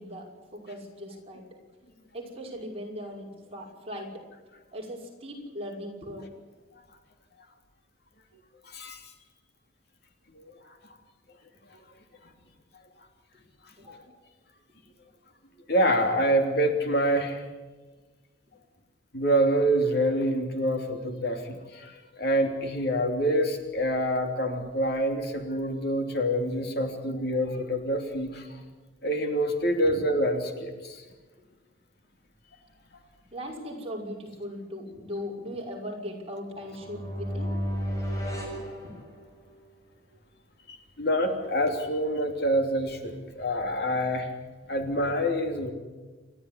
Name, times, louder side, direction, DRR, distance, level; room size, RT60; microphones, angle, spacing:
voice 1, 0.0-1.4 2.1-4.2 4.7-6.3 13.3-13.4 13.8-14.2 29.8-30.0 33.3-37.6 38.8-38.9 44.6-44.7, equal, 30° right, -1 dB, 5.8 m, -39 dB
voice 2, 8.7-9.0 10.3-10.5 10.8-10.9 11.7-11.8 15.7-17.4 19.1-28.6 29.0-31.0 40.7-44.3 44.7-45.7, equal, 55° left, 4 dB, 3.1 m, -26 dB
sound 1, 36.5-39.6, equal, 15° left, 6.9 m, -33 dB
28.5 x 12.5 x 9.9 m, 1.3 s
head